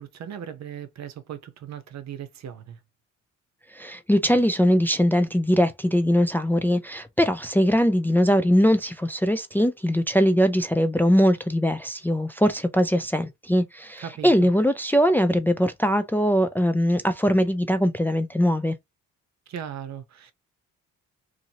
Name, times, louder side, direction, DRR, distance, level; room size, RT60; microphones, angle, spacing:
voice 1, 0.0-2.8 14.0-14.5 19.5-20.3, right 9 dB, 60° right, 0.8 m, -38 dB
voice 2, 3.7-18.8, equal, 5° left, 0.4 m, -21 dB
2.7 x 2.7 x 2.7 m
cardioid pair, 90°, 30 cm